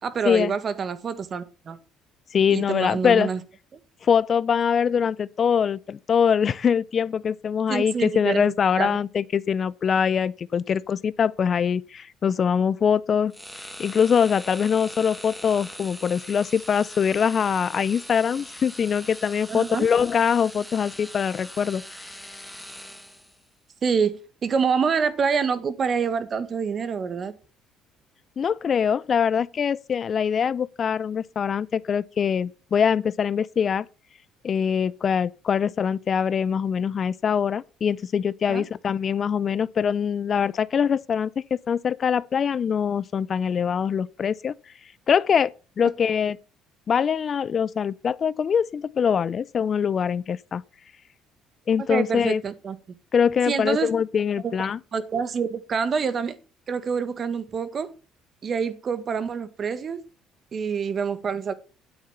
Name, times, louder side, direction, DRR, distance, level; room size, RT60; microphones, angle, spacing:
voice 1, 0.0-1.8 2.5-3.4 7.7-9.0 19.5-19.9 23.8-27.3 38.5-38.6 51.9-52.8 53.4-53.9 54.4-56.3 56.7-57.9 58.4-60.0 60.5-61.5, right 6 dB, 45° right, 1.7 m, -26 dB
voice 2, 2.3-3.3 4.0-13.3 13.8-21.8 28.4-33.9 34.4-44.5 45.1-46.4 46.9-50.6 51.7-52.4 53.1-54.8, left 7 dB, 45° left, 0.5 m, -23 dB
sound 1, 13.3-23.4, equal, ahead, 1.7 m, -41 dB
9.5 x 8.2 x 5.6 m
supercardioid pair, 85°, 0 cm